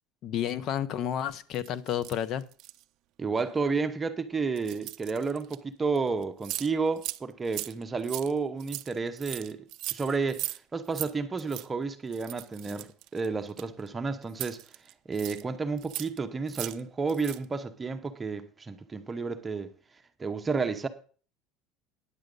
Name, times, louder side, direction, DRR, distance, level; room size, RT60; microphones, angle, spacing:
voice 1, 0.2-2.5, left 10 dB, 50° left, 0.7 m, -31 dB
sound 1, 1.5-2.8 3.4-3.6 4.6-5.6 6.0-6.1 6.2-6.7 7.0-7.2 7.4-10.6 10.9-11.1 11.4-11.7 12.1-13.9 14.3-15.4 15.8-16.2 16.5-16.8 17.1-17.4, right 16 dB, 60° right, 0.4 m, -38 dB
voice 2, 3.2-9.6 9.9-12.9 13.1-14.6 15.1-19.7 20.2-20.9, right 4 dB, 20° right, 0.8 m, -31 dB
9.9 x 7.7 x 5.3 m
supercardioid pair, 130°, 0 cm